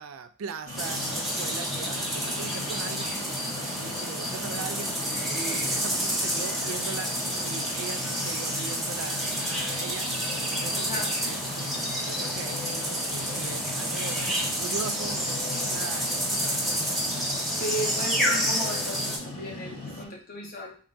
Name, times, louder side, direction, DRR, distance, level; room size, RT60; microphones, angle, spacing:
voice 1, 0.0-3.1 3.6-4.9 5.3-7.2 7.4-10.1 10.4-16.8, right 6 dB, 70° right, 10 dB, 0.3 m, -40 dB
sound 1, 0.6-20.1, left 2 dB, 75° left, 1.2 m, -39 dB
sound 2, 0.8-19.2, equal, ahead, 0.7 m, -29 dB
voice 2, 10.7-11.1 17.6-20.8, equal, 40° left, -1 dB, 1.0 m, -35 dB
3.7 x 2.3 x 3.9 m, 0.43 s
head